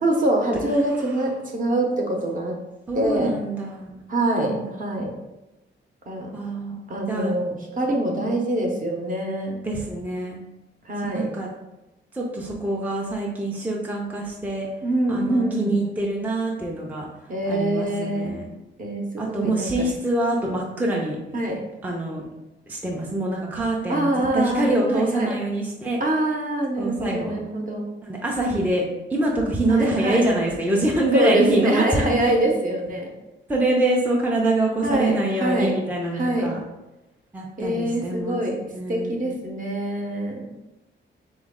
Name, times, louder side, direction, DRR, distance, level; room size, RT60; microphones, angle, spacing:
voice 1, 0.0-2.6 2.9-3.3 4.1-5.1 6.1-6.3 6.9-9.6 10.9-11.3 14.8-15.7 17.3-18.3 18.8-19.9 21.3-21.6 23.9-25.3 26.0-27.9 29.7-30.2 31.1-33.1 34.8-35.8 36.1-36.5 37.6-38.6 38.9-40.5, right 1 dB, 40° right, 1 dB, 0.8 m, -24 dB
voice 2, 2.9-3.9 4.4-4.8 6.3-7.4 9.6-10.4 11.1-11.5 12.1-14.7 15.1-17.1 17.5-18.4 19.2-21.2 21.8-22.2 22.7-26.0 26.8-27.3 28.0-28.8 29.1-32.3 33.5-36.6 37.3-38.4 38.7-39.3, right 1 dB, 10° right, -2 dB, 0.4 m, -25 dB
4.0 x 3.1 x 3.6 m, 1.0 s
wide cardioid pair, 155°, 20 cm